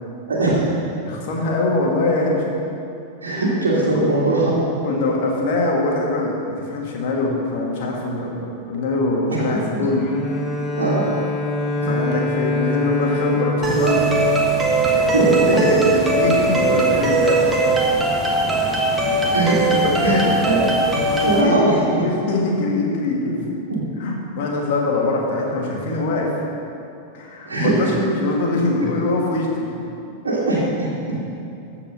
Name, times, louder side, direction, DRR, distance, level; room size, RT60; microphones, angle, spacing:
voice 1, 0.3-0.6 0.9-1.0 3.2-4.6 9.3-9.4 9.8-9.9 10.7-11.1 15.1-15.6 19.3-19.6 20.0-20.6 21.2-22.0 23.7-23.8 27.5-27.7 30.2-31.2, right 2 dB, 70° right, -7 dB, 2.0 m, -20 dB
voice 2, 1.1-2.5 3.9-4.0 4.8-10.1 11.8-14.0 14.9-17.7 19.0-19.2 19.7-20.3 21.1-23.4 24.0-26.3 27.1-29.9, left 2 dB, 50° left, -1 dB, 2.0 m, -23 dB
Bowed string instrument, 10.0-15.2, left 1 dB, 20° left, 1.9 m, -25 dB
sound 1, 13.6-21.4, right 3 dB, 10° right, 1.5 m, -19 dB
14.0 x 4.9 x 6.3 m, 2.7 s
figure-of-eight pair, 90°, 0 cm